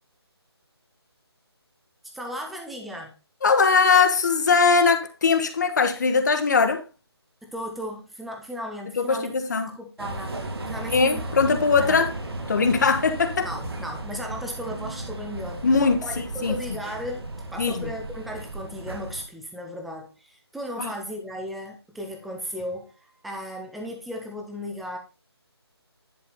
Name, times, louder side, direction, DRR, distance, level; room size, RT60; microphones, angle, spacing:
voice 1, 2.1-3.1 7.4-10.4 10.7-11.3 11.8-12.0 13.4-15.7 16.0-25.0, equal, ahead, 0.4 m, -36 dB
voice 2, 3.4-6.8 9.0-9.7 10.9-12.1 12.5-13.5 15.6-16.5 17.6-17.9 20.8-20.9, left 5 dB, 40° left, 1.1 m, -21 dB
sound 1, 10.0-19.2, right 2 dB, 65° right, 2.3 m, -35 dB
10.5 x 4.9 x 4.1 m
figure-of-eight pair, 160°, 14 cm